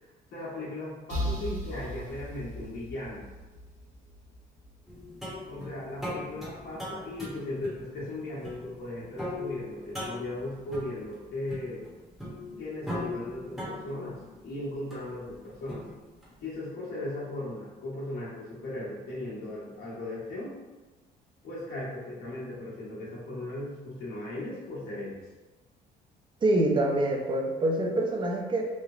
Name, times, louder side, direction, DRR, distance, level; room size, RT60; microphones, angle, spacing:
voice 1, 0.3-3.2 5.5-11.8 12.6-15.9 16.4-20.5 21.4-25.2, left 1 dB, 70° left, -7 dB, 1.2 m, -37 dB
sound 1, 1.1-4.8, equal, 45° right, 0.9 m, -37 dB
sound 2, 4.9-16.4, left 1 dB, ahead, 0.8 m, -40 dB
voice 2, 26.4-28.7, right 1 dB, 30° right, 1 dB, 0.5 m, -26 dB
3.1 x 2.0 x 2.4 m, 1.2 s
cardioid pair, 110°, 17 cm